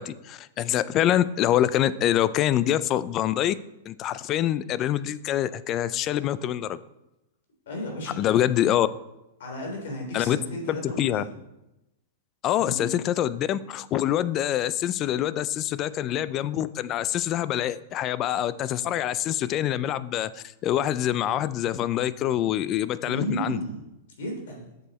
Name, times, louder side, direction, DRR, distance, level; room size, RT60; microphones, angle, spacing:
voice 1, 0.0-3.6 3.9-6.8 8.2-8.9 10.1-10.4 10.7-11.2 12.4-23.6, left 12 dB, 30° left, 17 dB, 0.3 m, -25 dB
voice 2, 7.7-8.2 9.4-11.3 12.6-13.0 23.0-23.8 24.2-24.7, equal, 70° left, 1 dB, 3.4 m, -33 dB
8.1 x 6.8 x 4.2 m, 0.93 s
hypercardioid pair, 150°, 0 cm